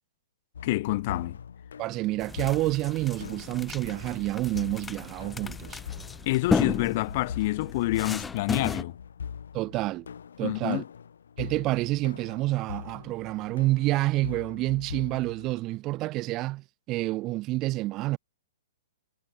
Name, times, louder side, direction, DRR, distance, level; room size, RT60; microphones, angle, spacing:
sound 1, 0.5-15.6, left 7 dB, 85° left, 3.9 m, -42 dB
voice 1, 0.6-1.4 6.3-9.0 10.4-10.8, left 19 dB, 45° left, 4.7 m, -27 dB
voice 2, 1.8-5.8 9.5-10.1 10.4-10.8 11.4-18.2, right 18 dB, 30° right, 4.2 m, -28 dB
sound 2, 2.2-8.8, left 4 dB, 10° left, 1.6 m, -34 dB
hypercardioid pair, 145°, 0 cm